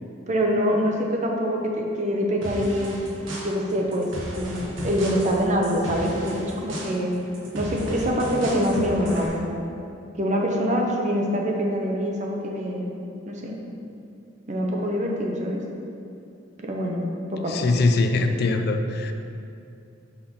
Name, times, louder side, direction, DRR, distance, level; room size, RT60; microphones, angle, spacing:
voice 1, 0.3-3.0 3.4-4.1 4.4-7.1 7.5-9.6 10.2-12.9 13.3-13.6 14.5-15.6 16.6-17.8, equal, 40° right, 0 dB, 0.9 m, -25 dB
sound 1, 2.4-9.3, right 1 dB, 75° right, 1.4 m, -35 dB
voice 2, 17.5-19.1, left 3 dB, 55° left, 6 dB, 0.4 m, -22 dB
5.8 x 5.6 x 4.3 m, 2.6 s
head